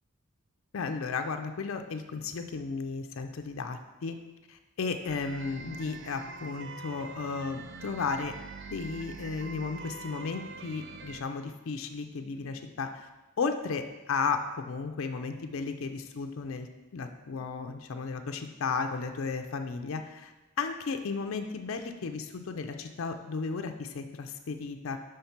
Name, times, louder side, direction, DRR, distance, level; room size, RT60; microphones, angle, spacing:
voice 1, 0.7-4.2 4.5-8.3 8.7-13.1 13.4-16.7 16.9-25.0, left 4 dB, 65° left, 5 dB, 0.4 m, -34 dB
sound 1, 5.1-11.2, right 4 dB, 55° right, 0.3 m, -44 dB
5.7 x 3.2 x 5.7 m, 1.1 s
head